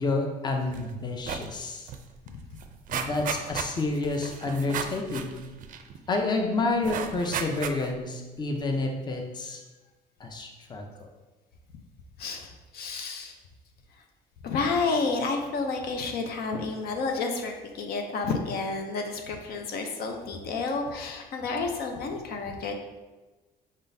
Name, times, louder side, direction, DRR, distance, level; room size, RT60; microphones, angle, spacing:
voice 1, 0.0-1.9 2.9-5.3 6.1-9.6 10.2-10.9, left 3 dB, 25° left, 2 dB, 0.6 m, -29 dB
sound 1, 0.7-0.9 1.2-1.5 1.9-2.0 2.3-6.2 6.8-8.1 8.5-8.6, right 7 dB, 50° right, 0.4 m, -35 dB
voice 2, 12.2-13.3 14.4-22.7, left 4 dB, 65° left, 3 dB, 0.6 m, -30 dB
5.0 x 3.7 x 2.7 m, 1.2 s
cardioid pair, 110°, 17 cm